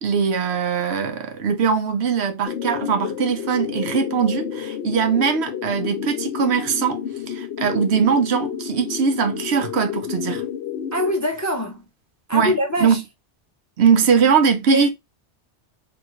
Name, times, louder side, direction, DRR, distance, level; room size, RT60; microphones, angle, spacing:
voice 1, 0.0-7.0 7.3-10.4 12.3-12.5 12.8-13.0 13.8-14.9, right 6 dB, 70° right, 0.9 m, -21 dB
sound 1, 2.5-11.1, left 9 dB, 70° left, 0.8 m, -30 dB
voice 2, 10.9-11.8 12.3-13.0 14.7-14.9, equal, 20° left, 0.5 m, -23 dB
3.5 x 2.3 x 3.1 m
omnidirectional pair, 1.2 m